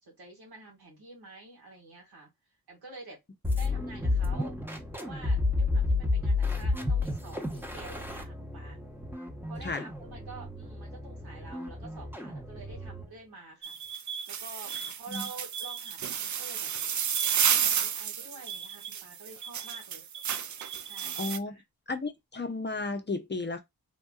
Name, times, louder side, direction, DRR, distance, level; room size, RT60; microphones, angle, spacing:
voice 1, 0.0-2.3 2.7-3.2 3.5-4.6 5.0-8.8 9.5-13.8 14.3-16.7 17.2-20.1 20.8-21.6, right 3 dB, 85° right, 2.2 m, -48 dB
sound 1, 3.4-13.1, left 3 dB, 5° right, 1.1 m, -31 dB
sound 2, 13.6-21.4, right 8 dB, 50° right, 0.5 m, -31 dB
voice 2, 21.2-21.6 21.9-23.6, left 3 dB, 30° left, 0.7 m, -33 dB
3.6 x 2.6 x 2.3 m
cardioid pair, 75°, 38 cm